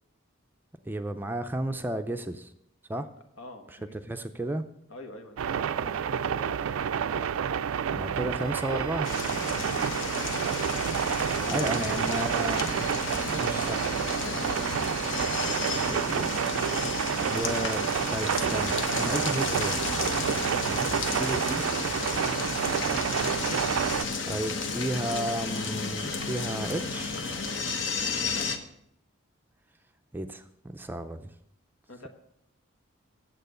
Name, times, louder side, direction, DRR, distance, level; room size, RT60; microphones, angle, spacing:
voice 1, 0.9-2.5 2.9-3.1 3.9-4.6 7.9-9.1 11.5-12.7 13.3-13.9 15.9-16.3 17.3-19.8 20.6-21.6 24.3-27.2 30.1-31.3, right 1 dB, 10° right, 7 dB, 0.4 m, -33 dB
voice 2, 3.4-3.9 4.9-7.3 11.4-11.8 14.0-14.8 28.0-28.5 31.9-32.1, left 1 dB, 80° left, 5 dB, 1.4 m, -46 dB
sound 1, 5.4-24.1, right 8 dB, 90° right, 0.4 m, -29 dB
Bowed string instrument, 8.3-14.1, left 5 dB, 40° left, 1.9 m, -47 dB
sound 2, 9.0-28.6, left 4 dB, 60° left, 1.0 m, -33 dB
9.1 x 7.6 x 6.6 m, 0.76 s
head